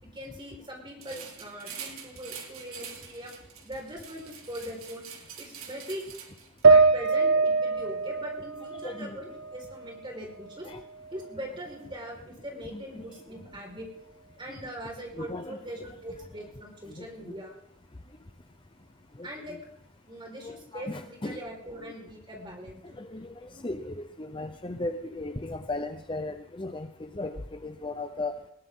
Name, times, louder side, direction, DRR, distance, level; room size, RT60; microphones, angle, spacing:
voice 1, 0.0-3.3 3.6-5.1 5.4-6.0 6.7-10.7 11.1-13.9 14.4-17.6 19.2-19.5 20.1-23.1, equal, 20° right, 0 dB, 4.8 m, -41 dB
sound 1, 1.0-6.6, right 7 dB, 80° right, 2.9 m, -45 dB
sound 2, 6.6-10.1 10.4-11.5, right 4 dB, 55° right, 0.8 m, -24 dB
voice 2, 8.7-9.2 10.6-10.8 12.7-13.1 15.1-15.6 16.9-17.3 19.2-19.6 20.4-21.4 23.0-28.3, left 2 dB, 25° left, 7 dB, 0.7 m, -37 dB
20.5 x 17.5 x 3.8 m, 0.76 s
head